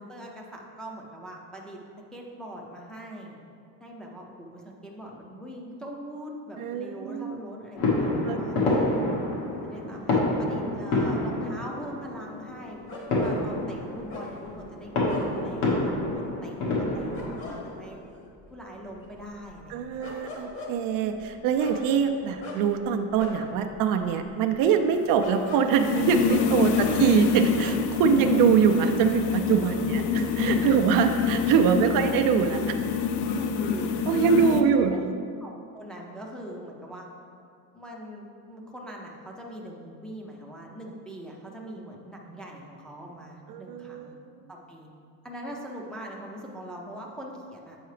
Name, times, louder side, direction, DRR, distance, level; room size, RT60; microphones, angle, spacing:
voice 1, 0.0-1.8 2.1-3.4 3.8-8.7 9.6-18.0 18.5-20.1 26.7-27.0 29.8-30.0 30.7-31.1 31.8-32.2 33.3-33.9 34.4-35.0 35.4-37.1 37.7-44.2 44.5-44.9 45.2-47.8, equal, ahead, -3 dB, 0.5 m, -42 dB
voice 2, 6.6-7.3 7.8-9.2 19.7-30.0 30.4-32.8 34.1-35.1 43.5-44.3, right 7 dB, 65° right, 5 dB, 0.5 m, -24 dB
sound 1, 7.7-17.7, left 2 dB, 75° left, 1.6 m, -28 dB
sound 2, 12.9-28.1 28.3-29.1, left 2 dB, 35° left, 1.1 m, -43 dB
sound 3, 25.0-34.6, left 6 dB, 55° left, 0.5 m, -27 dB
7.9 x 4.6 x 3.2 m, 2.3 s
cardioid pair, 145°, 37 cm